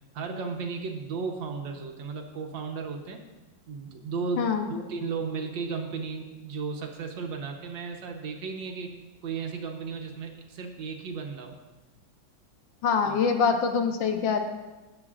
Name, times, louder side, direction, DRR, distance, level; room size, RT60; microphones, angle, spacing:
voice 1, 0.1-3.2 3.7-8.9 9.2-11.5 13.0-13.2, right 5 dB, 75° right, 3 dB, 1.7 m, -34 dB
voice 2, 4.4-4.7 12.8-14.4, left 6 dB, 80° left, 6 dB, 1.6 m, -24 dB
17.0 x 7.5 x 2.4 m, 1.1 s
omnidirectional pair, 2.1 m